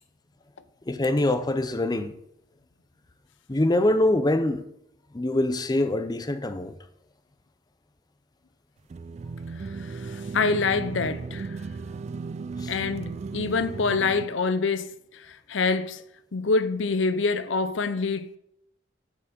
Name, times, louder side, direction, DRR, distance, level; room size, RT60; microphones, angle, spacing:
voice 1, 0.9-2.1 3.5-4.7 5.1-6.7 12.6-12.7, left 1 dB, 20° left, 0.6 m, -24 dB
sound 1, 8.9-14.3, right 4 dB, 35° right, 0.3 m, -35 dB
voice 2, 9.7-11.6 12.7-16.0 16.3-18.4, left 4 dB, 80° left, 0.6 m, -26 dB
12.0 x 4.8 x 7.8 m
head